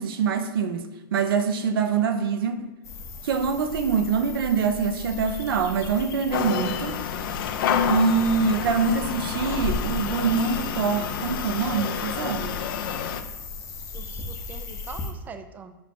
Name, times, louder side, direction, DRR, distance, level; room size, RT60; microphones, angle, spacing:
voice 1, 0.0-2.6 3.2-7.0 7.9-12.6, right 5 dB, 75° right, 0.5 m, -24 dB
sound 1, 2.8-15.1, left 3 dB, 25° left, 0.7 m, -37 dB
sound 2, 6.3-13.2, left 8 dB, 65° left, 0.4 m, -29 dB
voice 2, 13.9-15.8, right 5 dB, 15° right, 0.3 m, -43 dB
5.9 x 2.0 x 4.2 m
hypercardioid pair, 125°, 12 cm